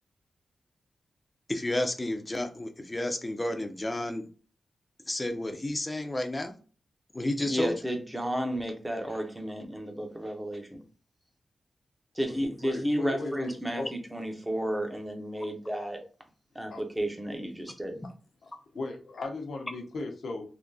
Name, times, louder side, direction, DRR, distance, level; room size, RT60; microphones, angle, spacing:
voice 1, 1.5-4.3 5.1-6.6 7.1-7.7, left 1 dB, 20° left, 6 dB, 0.6 m, -31 dB
voice 2, 7.5-10.8 12.1-13.8 14.1-16.0 16.5-18.0, equal, 10° right, 4 dB, 0.8 m, -32 dB
voice 3, 12.6-13.9 16.7-16.8 18.4-20.4, left 3 dB, 85° left, 3 dB, 0.7 m, -37 dB
3.5 x 2.8 x 2.7 m, 0.38 s
wide cardioid pair, 100°, 0 cm